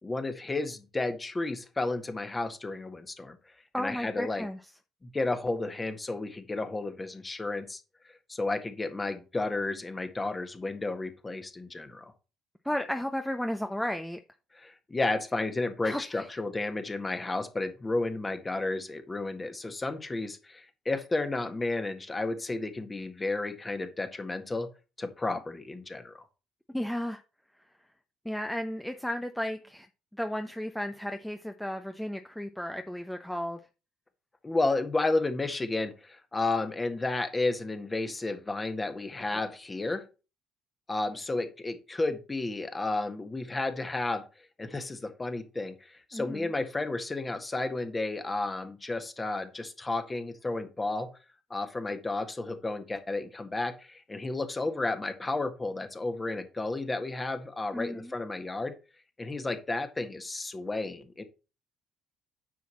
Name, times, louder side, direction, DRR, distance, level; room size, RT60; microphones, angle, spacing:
voice 1, 0.0-3.4 3.8-4.5 5.0-7.8 8.3-12.1 14.5-24.7 25.0-26.1 34.4-40.0 40.9-44.2 44.6-51.1 51.5-58.7 59.2-61.2, left 2 dB, 20° left, 1.8 m, -32 dB
voice 2, 3.7-4.6 12.6-14.2 15.8-16.3 26.7-27.2 28.2-29.9 30.1-33.6 46.1-46.5 57.7-58.1, equal, 5° left, 0.8 m, -34 dB
9.5 x 6.0 x 4.2 m
figure-of-eight pair, 50°, 0 cm